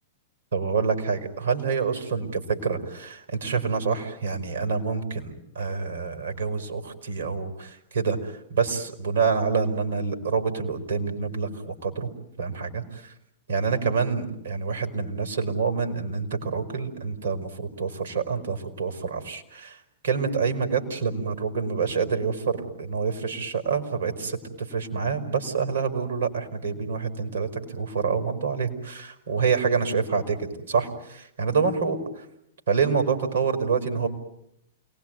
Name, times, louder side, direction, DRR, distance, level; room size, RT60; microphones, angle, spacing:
voice 1, 0.5-12.1 12.4-13.1 13.5-19.8 20.0-32.2 32.7-34.1, right 5 dB, 90° right, 6 dB, 5.2 m, -27 dB
29.0 x 19.5 x 9.5 m, 0.78 s
hypercardioid pair, 115°, 0 cm